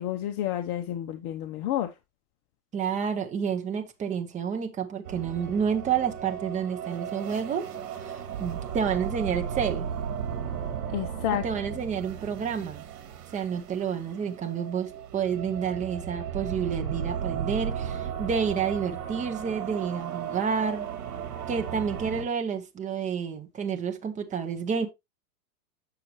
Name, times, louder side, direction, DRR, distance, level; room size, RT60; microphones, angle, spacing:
voice 1, 0.0-2.0 10.9-11.4, left 12 dB, 35° left, 0.8 m, -30 dB
voice 2, 2.7-7.7 8.0-9.9 11.3-12.8 13.3-20.9 21.5-24.9, right 7 dB, 15° right, 1.0 m, -29 dB
sound 1, 5.0-22.3, right 8 dB, 65° right, 1.9 m, -35 dB
7.7 x 6.6 x 3.1 m
hypercardioid pair, 125°, 47 cm